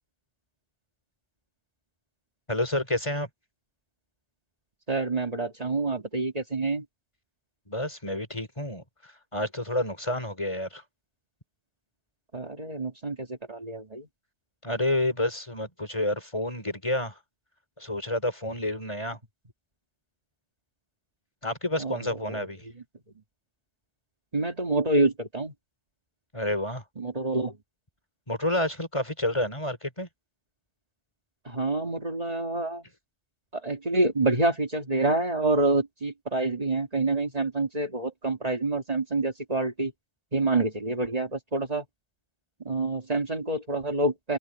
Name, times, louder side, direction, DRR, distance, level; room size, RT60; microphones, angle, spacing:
voice 1, 2.5-3.3 7.7-8.8 9.3-10.8 14.6-17.2 17.8-19.2 21.4-22.7 26.3-26.8 28.3-30.1, left 1 dB, 30° left, 4.7 m, -29 dB
voice 2, 4.9-6.8 12.3-14.1 21.8-22.4 24.3-25.5 27.0-27.6 31.5-32.8 33.5-39.9 40.3-41.9 42.6-44.4, right 2 dB, 40° right, 2.3 m, -27 dB
omnidirectional pair, 1.1 m